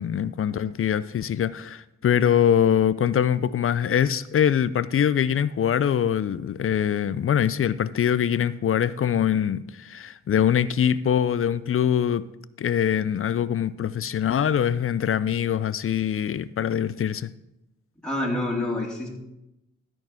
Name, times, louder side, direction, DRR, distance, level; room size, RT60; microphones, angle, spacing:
voice 1, 0.0-12.3 12.6-17.3, left 9 dB, 45° left, 0.5 m, -23 dB
voice 2, 18.0-19.1, left 1 dB, 5° left, 2.8 m, -27 dB
13.5 x 4.6 x 5.8 m
cardioid pair, 60°, 31 cm